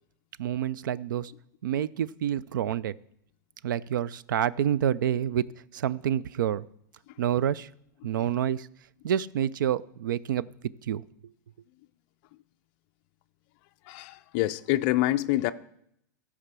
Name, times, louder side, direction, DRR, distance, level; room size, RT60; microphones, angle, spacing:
voice 1, 0.4-1.3 1.6-3.0 3.6-5.4 5.7-6.7 7.2-7.7 8.0-8.7 9.0-10.5 10.9-11.0, right 10 dB, 85° right, 0.4 m, -28 dB
voice 2, 13.9-15.5, left 16 dB, 30° left, 0.4 m, -26 dB
14.5 x 4.9 x 6.8 m
supercardioid pair, 170°, 10 cm